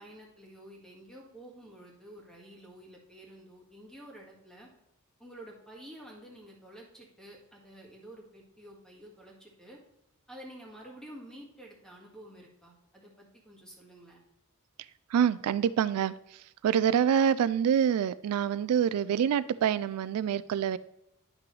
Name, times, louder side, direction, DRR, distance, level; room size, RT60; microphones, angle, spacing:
voice 1, 0.0-4.7 5.2-9.8 10.3-14.2, right 1 dB, 5° left, -2 dB, 1.8 m, -50 dB
voice 2, 15.1-20.8, right 8 dB, 85° right, 16 dB, 0.3 m, -26 dB
10.0 x 6.0 x 3.2 m, 0.89 s
head